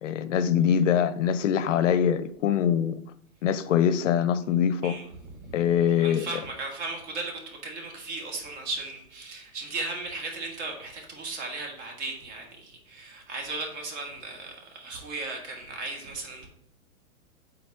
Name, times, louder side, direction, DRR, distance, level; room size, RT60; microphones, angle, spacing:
voice 1, 0.0-3.0 3.4-4.9 5.5-6.3, left 9 dB, 60° left, 13 dB, 0.5 m, -23 dB
voice 2, 4.8-5.6 6.0-16.5, right 3 dB, 50° right, 1 dB, 2.1 m, -36 dB
8.6 x 4.1 x 2.8 m, 0.69 s
hypercardioid pair, 130°, 43 cm